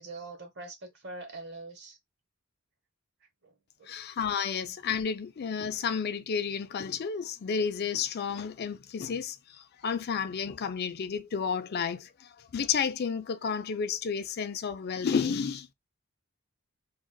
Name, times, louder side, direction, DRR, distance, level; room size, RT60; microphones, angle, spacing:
voice 1, 0.0-2.0 3.4-3.9, right 2 dB, 50° right, 1.1 m, -43 dB
voice 2, 3.9-15.7, left 6 dB, 45° left, 0.4 m, -31 dB
3.8 x 2.4 x 2.3 m
head